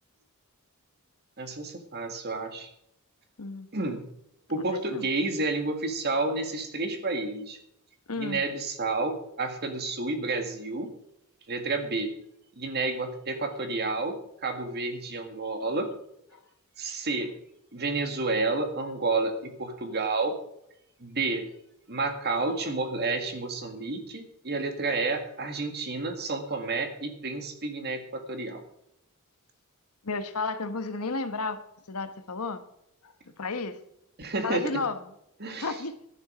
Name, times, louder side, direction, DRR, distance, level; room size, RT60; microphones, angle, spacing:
voice 1, 1.4-2.7 3.7-4.0 4.5-7.6 8.2-10.9 11.5-12.1 12.6-14.2 14.4-15.9 16.8-17.3 17.7-20.3 21.0-21.4 21.9-28.6 34.2-34.9 35.4-35.8, right 3 dB, 50° right, 6 dB, 1.9 m, -30 dB
voice 2, 4.6-5.1 8.1-8.4 30.0-31.6 31.9-32.6 33.0-33.1 33.4-33.8 34.4-35.0 35.4-35.9, left 3 dB, 80° left, 10 dB, 1.2 m, -32 dB
12.0 x 10.5 x 5.1 m, 0.77 s
head